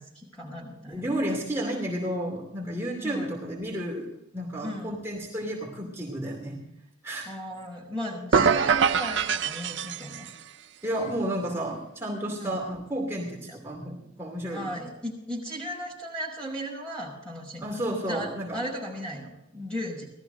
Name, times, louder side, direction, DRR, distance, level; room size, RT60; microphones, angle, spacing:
voice 1, 0.0-1.2 3.0-3.4 4.6-5.0 7.2-10.3 12.4-12.5 13.5-13.6 14.5-20.1, equal, 5° left, -3 dB, 5.6 m, -36 dB
voice 2, 0.9-6.6 7.0-7.3 10.8-14.8 17.6-18.6, right 1 dB, 10° right, -3 dB, 2.6 m, -32 dB
sound 1, 8.3-10.4, right 6 dB, 55° right, 0.5 m, -24 dB
18.5 x 13.0 x 3.9 m, 0.84 s
head